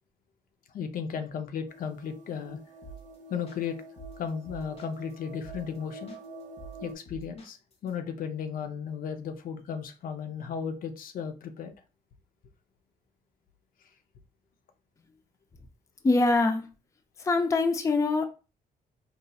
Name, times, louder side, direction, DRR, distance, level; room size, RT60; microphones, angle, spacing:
voice 1, 0.7-2.6 3.3-3.8 4.2-6.2 6.8-7.6 7.8-11.7, left 7 dB, 65° left, 7 dB, 0.6 m, -35 dB
sound 1, 1.7-6.9, right 1 dB, 55° right, 0.6 m, -47 dB
sound 2, 2.8-3.2 3.5-5.1 5.4-5.8 6.1-7.9, right 3 dB, 40° left, 0.9 m, -47 dB
voice 2, 16.0-16.6 17.2-18.3, left 3 dB, 20° left, 6 dB, 0.4 m, -23 dB
4.1 x 2.7 x 2.3 m, 0.32 s
cardioid pair, 130°, 16 cm